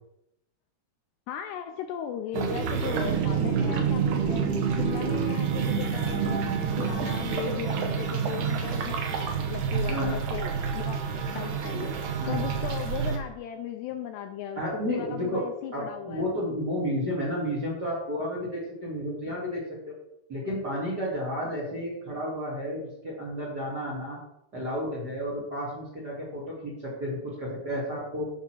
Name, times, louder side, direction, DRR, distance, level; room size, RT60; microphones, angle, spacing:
voice 1, 1.3-6.4 6.8-11.0 11.3-12.0 12.3-16.4, left 9 dB, 80° left, 6 dB, 2.5 m, -37 dB
sound 1, 2.3-13.2, right 6 dB, 70° right, 1.9 m, -28 dB
voice 2, 9.9-10.2 12.2-12.5 14.6-15.4 15.7-19.9 20.3-24.2 24.5-28.3, equal, 35° right, -3 dB, 1.9 m, -32 dB
11.5 x 4.6 x 6.1 m, 0.80 s
omnidirectional pair, 5.3 m